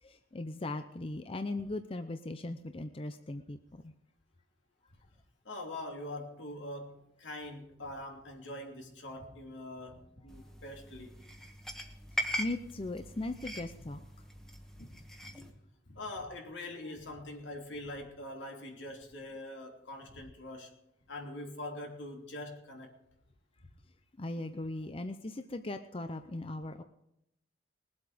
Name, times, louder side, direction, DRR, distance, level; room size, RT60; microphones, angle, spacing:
voice 1, 0.0-3.9 12.4-14.0 24.2-26.8, left 2 dB, 30° left, 8 dB, 0.6 m, -38 dB
voice 2, 5.4-11.2 14.7-14.9 15.2-20.7 21.1-22.9, left 1 dB, 80° left, 2 dB, 3.2 m, -43 dB
sound 1, 10.3-15.5, left 1 dB, 5° left, 1.5 m, -41 dB
21.0 x 8.1 x 5.1 m, 0.80 s
head